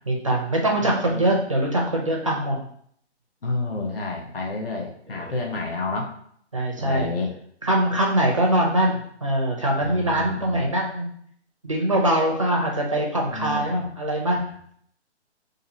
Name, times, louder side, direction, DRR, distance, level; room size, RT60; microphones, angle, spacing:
voice 1, 0.1-2.6 6.5-7.1 7.6-11.1 11.6-14.4, right 1 dB, 30° right, -1 dB, 0.4 m, -23 dB
voice 2, 0.8-1.3 2.2-2.5 3.4-6.1 6.8-7.3 9.8-10.6 13.3-13.9 14.3-14.4, left 3 dB, 55° left, 0 dB, 0.8 m, -30 dB
2.6 x 2.6 x 4.0 m, 0.65 s
hypercardioid pair, 170°, 35 cm